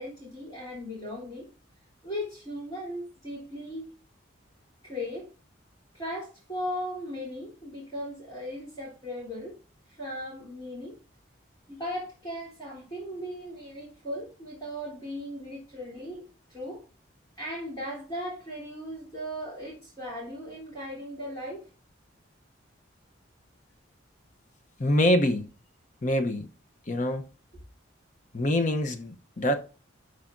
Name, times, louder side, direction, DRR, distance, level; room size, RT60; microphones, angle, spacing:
voice 1, 0.0-1.5 2.0-3.9 4.8-5.3 5.9-9.6 9.9-11.0 11.7-16.8 17.4-21.6, equal, 20° left, 3.4 m, -37 dB
voice 2, 24.8-25.5 26.0-26.5 26.9-27.2 28.3-29.5, left 1 dB, 40° left, 0.8 m, -25 dB
12.0 x 4.8 x 2.6 m
head